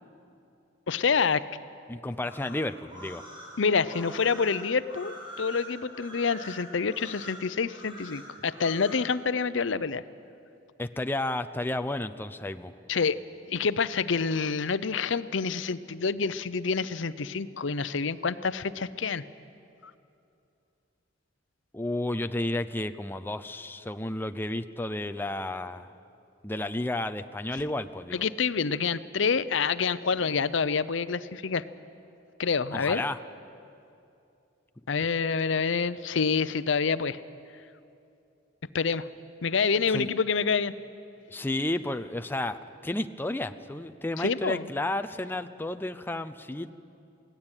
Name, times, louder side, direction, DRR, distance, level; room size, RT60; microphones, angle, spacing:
voice 1, 0.9-1.4 3.6-10.0 12.9-13.2 13.5-19.2 27.5-27.6 28.1-31.6 32.4-33.0 34.9-37.2 38.7-39.1 39.4-40.7 44.2-44.7, left 5 dB, 70° left, 15 dB, 0.7 m, -27 dB
voice 2, 1.9-3.2 10.8-12.7 21.7-25.9 26.4-28.2 32.7-33.2 35.0-35.1 39.9-40.1 41.3-46.7, left 1 dB, 10° left, 8 dB, 0.6 m, -32 dB
sound 1, 2.1-9.0, equal, 25° right, 6.0 m, -45 dB
23.0 x 17.0 x 9.0 m, 2.6 s
head